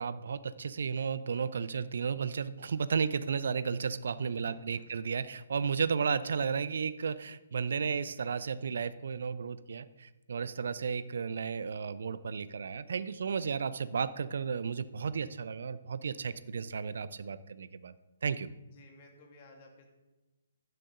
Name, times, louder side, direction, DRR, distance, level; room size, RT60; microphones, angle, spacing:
voice 1, 0.0-17.9 18.2-18.5, right 6 dB, 60° right, 15 dB, 0.7 m, -33 dB
voice 2, 4.4-4.9 18.6-19.9, left 2 dB, 40° left, 2 dB, 2.5 m, -56 dB
16.0 x 11.5 x 3.8 m, 1.1 s
figure-of-eight pair, 130°, 0 cm